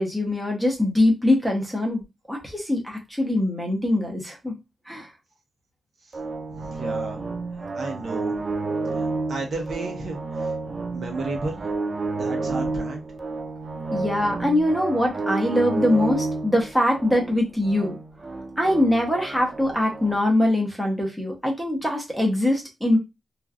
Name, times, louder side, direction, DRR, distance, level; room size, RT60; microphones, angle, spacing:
voice 1, 0.0-2.0 2.3-4.6 4.9-5.1 13.9-18.0 18.6-23.0, left 1 dB, ahead, 0.8 m, -22 dB
sound 1, 6.1-20.2, right 3 dB, 35° right, 0.3 m, -30 dB
voice 2, 6.5-7.2 7.6-8.4 8.9-10.5 10.9-11.7 12.1-13.1, right 3 dB, 60° right, 0.8 m, -33 dB
3.0 x 2.4 x 2.4 m
wide cardioid pair, 145°, 0 cm